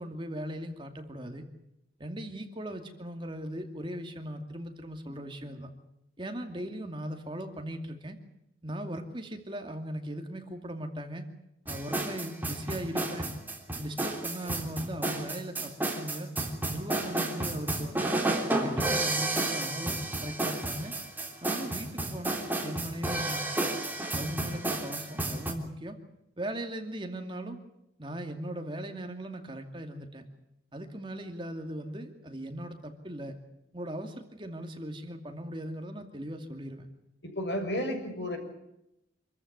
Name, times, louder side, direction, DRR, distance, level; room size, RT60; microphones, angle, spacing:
voice 1, 0.0-1.4 2.0-5.7 6.2-8.2 8.6-11.2 11.6-13.3 13.8-16.3 16.7-18.1 18.5-20.9 21.4-23.7 24.1-26.0 26.4-27.6 28.0-30.2 30.7-33.3 33.7-36.9, right 1 dB, 25° right, 5 dB, 2.4 m, -39 dB
sound 1, 11.7-25.5, right 2 dB, 10° right, 3.3 m, -31 dB
voice 2, 37.2-38.4, equal, 70° left, 4 dB, 6.7 m, -32 dB
26.5 x 14.5 x 9.7 m, 0.85 s
head